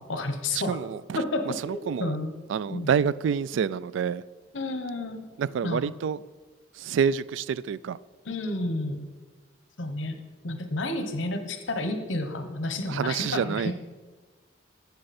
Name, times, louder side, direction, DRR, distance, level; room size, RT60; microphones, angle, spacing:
voice 1, 0.0-0.8 1.1-2.3 2.7-2.9 4.5-5.2 5.6-5.9 8.2-9.1 9.8-10.2 10.4-13.7, left 2 dB, 90° left, 1.0 m, -31 dB
voice 2, 0.5-1.0 1.7-2.1 2.5-4.2 5.4-6.2 6.8-8.0 12.9-13.7, right 7 dB, 80° right, 0.3 m, -27 dB
12.5 x 7.7 x 4.2 m
head